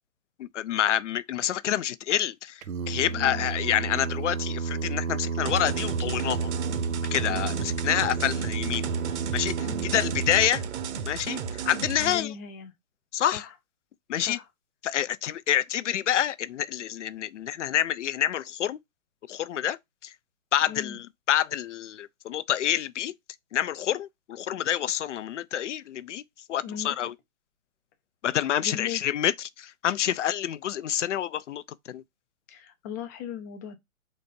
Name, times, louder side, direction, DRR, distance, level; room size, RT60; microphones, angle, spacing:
voice 1, 0.4-6.5 7.1-8.9 9.3-10.6 11.0-12.3 13.1-13.4 14.1-14.4 14.8-18.8 19.3-20.1 20.5-23.1 23.5-26.2 26.5-27.1 28.2-32.0, left 11 dB, 60° left, 0.6 m, -28 dB
Singing, 2.6-10.5, right 5 dB, 80° right, 0.8 m, -31 dB
voice 2, 3.1-3.5 7.2-7.7 9.6-9.9 12.0-12.7 13.3-13.5 14.3-14.4 20.7-21.0 26.6-27.0 28.6-29.0 32.5-33.8, left 8 dB, 15° left, 0.4 m, -38 dB
sound 1, 5.4-12.2, right 7 dB, 55° right, 1.0 m, -34 dB
4.5 x 4.2 x 5.2 m
hypercardioid pair, 135°, 41 cm